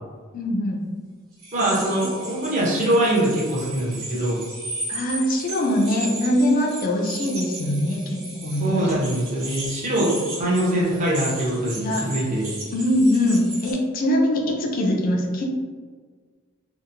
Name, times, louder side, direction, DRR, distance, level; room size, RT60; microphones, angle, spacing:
voice 1, 0.3-0.8 1.6-2.1 4.9-8.9 11.8-12.0 12.7-15.4, left 1 dB, 45° left, 1 dB, 0.4 m, -22 dB
sound 1, 1.4-13.7, right 2 dB, 85° right, 0.8 m, -36 dB
voice 2, 1.5-4.4 8.6-12.5, right 1 dB, 35° right, -5 dB, 0.7 m, -23 dB
2.8 x 2.0 x 2.5 m, 1.5 s
head